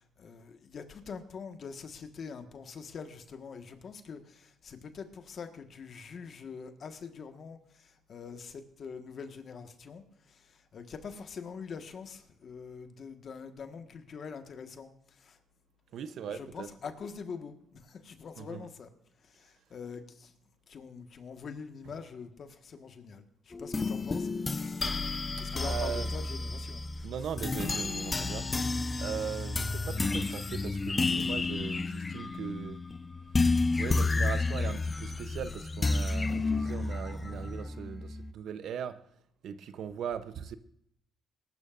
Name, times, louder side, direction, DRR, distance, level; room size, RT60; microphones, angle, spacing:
voice 1, 0.0-14.9 15.2-15.4 16.2-18.9 19.2-20.3 20.7-24.8 25.4-27.4, left 5 dB, 55° left, 1.5 m, -44 dB
voice 2, 15.9-16.7 18.4-18.7 25.4-26.1 27.0-32.8 33.8-39.1 39.4-40.6, right 8 dB, 70° right, 0.7 m, -39 dB
sound 1, 23.5-38.3, left 3 dB, 25° left, 0.5 m, -31 dB
21.0 x 12.0 x 2.5 m
cardioid pair, 90°, 0 cm